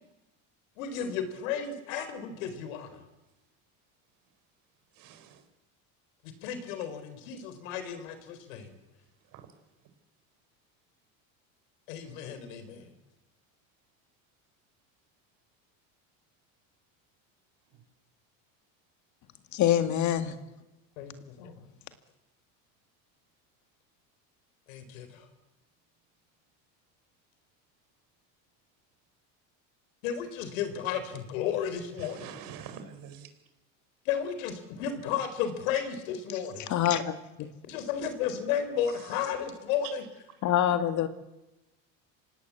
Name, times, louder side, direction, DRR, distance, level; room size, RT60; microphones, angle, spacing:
voice 1, 0.8-3.0 6.4-8.7 11.9-12.9 21.0-21.6 24.7-25.3 30.0-32.2 34.1-36.7 37.7-40.0, left 8 dB, 85° left, 4.2 m, -33 dB
voice 2, 5.0-5.4 9.3-9.5 12.3-12.5 32.0-33.3, right 8 dB, 55° right, 4.6 m, -46 dB
voice 3, 19.5-20.4 36.7-37.1 37.4-37.5 40.4-41.1, left 10 dB, 45° left, 2.1 m, -25 dB
25.5 x 18.5 x 8.3 m
supercardioid pair, 125°, 39 cm